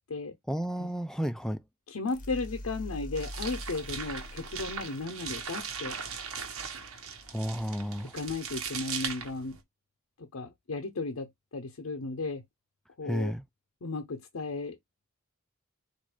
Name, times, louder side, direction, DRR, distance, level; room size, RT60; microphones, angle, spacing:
voice 1, 0.5-1.6 7.3-8.1 13.0-13.4, equal, 5° left, 0.4 m, -32 dB
voice 2, 1.9-6.0 8.0-9.6 10.2-12.4 13.0-13.3 13.8-14.8, left 3 dB, 85° left, 0.7 m, -35 dB
sound 1, 2.1-5.0, left 1 dB, 40° left, 0.8 m, -42 dB
sound 2, 3.1-9.6, right 6 dB, 90° right, 1.1 m, -39 dB
4.2 x 2.6 x 4.8 m
head